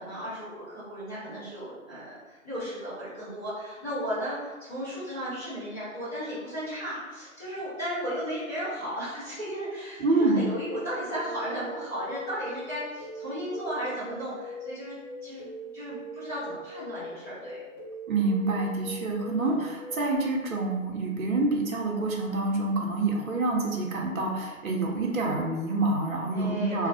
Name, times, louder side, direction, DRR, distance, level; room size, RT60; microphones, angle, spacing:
voice 1, 0.0-14.9 15.2-15.5 15.7-17.6 19.3-19.6 26.3-26.9, equal, 10° left, -17 dB, 1.1 m, -35 dB
voice 2, 10.0-10.4 18.1-26.9, right 2 dB, 75° right, -1 dB, 0.6 m, -27 dB
sound 1, 10.6-20.2, right 1 dB, 20° right, 0.6 m, -42 dB
2.4 x 2.0 x 2.6 m, 1.3 s
figure-of-eight pair, 150°, 42 cm